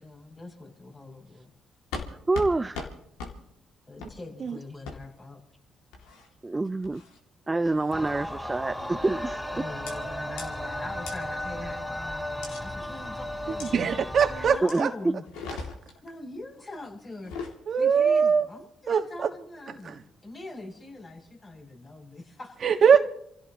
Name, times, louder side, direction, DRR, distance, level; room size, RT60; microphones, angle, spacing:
voice 1, 0.0-1.5 3.9-5.4 9.5-13.7 14.3-15.2 16.0-22.6, left 2 dB, 40° left, 7.4 m, -42 dB
sound 1, 1.9-2.1 2.3-2.5 2.7-2.9 3.2-3.3 4.0-4.1 4.9-5.0 5.9-6.3 6.8-7.2 7.7-8.0 8.8-9.0 9.9-10.0 10.4-10.5 11.1-11.2 12.4-12.6 13.6-13.7 14.7-14.8 15.2-16.0 17.1-17.6, left 4 dB, 80° left, 2.5 m, -38 dB
voice 2, 2.3-2.9 6.4-7.0 7.5-9.4 14.6-15.1, right 2 dB, 25° right, 0.6 m, -26 dB
sound 2, 7.9-14.6, left 1 dB, 5° left, 4.3 m, -35 dB
voice 3, 13.5-14.9 17.7-18.5 18.9-19.3 19.8-20.0 22.6-23.0, right 6 dB, 60° right, 1.6 m, -22 dB
28.5 x 16.0 x 3.0 m
hypercardioid pair, 50°, 0 cm